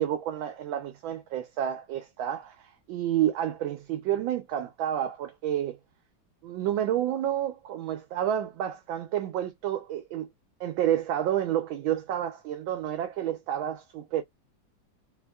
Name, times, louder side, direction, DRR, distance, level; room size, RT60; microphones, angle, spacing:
voice 1, 0.0-5.8 6.4-10.3 10.6-14.2, right 11 dB, 80° right, 1.4 m, -29 dB
4.0 x 2.6 x 2.3 m
omnidirectional pair, 2.2 m